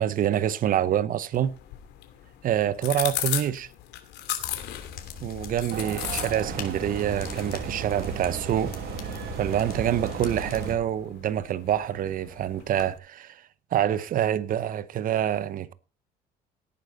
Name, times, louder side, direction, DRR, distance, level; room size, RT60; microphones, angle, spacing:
voice 1, 0.0-1.6 2.4-3.7 5.2-8.7 9.4-13.4 13.7-15.7, right 10 dB, 55° right, 0.9 m, -26 dB
sound 1, 1.3-13.0, left 13 dB, 85° left, 2.5 m, -38 dB
sound 2, 4.4-10.7, left 7 dB, 65° left, 3.1 m, -41 dB
sound 3, 5.7-10.8, right 7 dB, 75° right, 2.2 m, -35 dB
17.0 x 9.5 x 4.0 m
cardioid pair, 110°, 17 cm